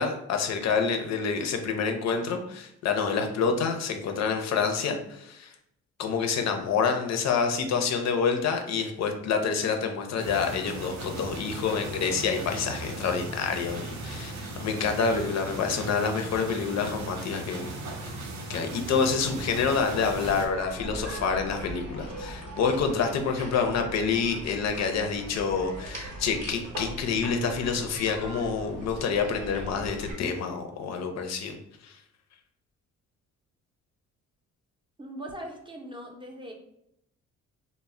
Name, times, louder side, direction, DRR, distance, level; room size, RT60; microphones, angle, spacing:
voice 1, 0.0-5.5 6.0-17.7 18.5-31.6 31.8-31.9, left 5 dB, 60° left, 5 dB, 0.5 m, -27 dB
sound 1, 10.2-20.5, right 2 dB, 70° right, 0.6 m, -38 dB
sound 2, 19.2-30.1, right 1 dB, 85° right, 1.0 m, -40 dB
voice 2, 35.0-36.5, right 1 dB, 15° right, 1 dB, 0.5 m, -40 dB
2.1 x 2.0 x 3.5 m, 0.76 s
cardioid pair, 90°, 30 cm